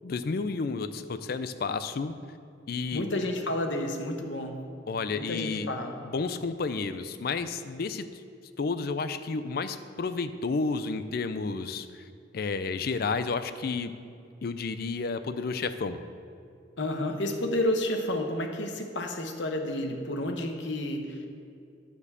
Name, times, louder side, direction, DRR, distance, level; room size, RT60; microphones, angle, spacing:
voice 1, 0.0-2.1 2.7-3.0 4.9-5.7 6.0-8.2 8.6-12.0 12.3-13.9 14.4-16.0, left 4 dB, 55° left, 11 dB, 0.4 m, -31 dB
voice 2, 2.9-4.6 5.1-6.0 16.8-21.3, left 1 dB, 75° left, 4 dB, 1.0 m, -30 dB
9.8 x 4.5 x 6.7 m, 2.4 s
head